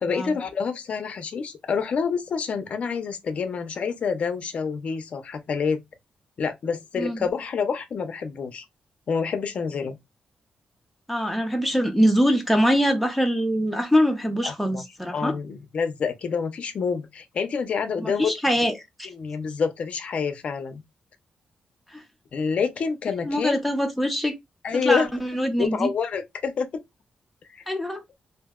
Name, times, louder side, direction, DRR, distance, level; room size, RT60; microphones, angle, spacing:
voice 1, 0.0-5.8 6.4-8.6 9.1-10.0 14.4-14.8 15.1-18.3 19.0-20.8 22.3-23.6 24.6-25.0 25.6-26.8 27.5-27.6, left 5 dB, 50° left, 0.5 m, -27 dB
voice 2, 7.0-7.3 11.1-15.3 18.0-19.1 21.9-22.0 23.2-24.3 24.7-25.9 27.7-28.0, equal, ahead, 0.5 m, -23 dB
2.5 x 2.0 x 3.5 m
wide cardioid pair, 170°, 3 cm